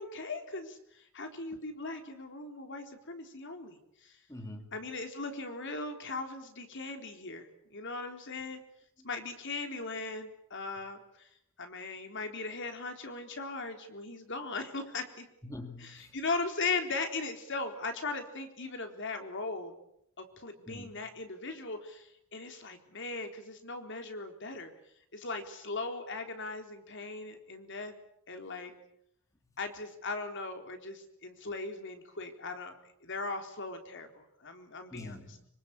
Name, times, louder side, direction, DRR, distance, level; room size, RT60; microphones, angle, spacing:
voice 1, 0.0-4.2 4.7-8.6 9.0-11.3 11.6-15.3 15.8-19.8 20.2-24.7 25.1-27.9 28.3-28.7 29.6-32.7 33.0-35.2, left 3 dB, 55° left, 5 dB, 3.9 m, -38 dB
voice 2, 4.3-4.8 9.0-9.1 15.4-16.2 20.7-21.0 34.9-35.5, left 1 dB, 15° left, 6 dB, 2.3 m, -45 dB
25.5 x 25.5 x 8.3 m, 0.75 s
head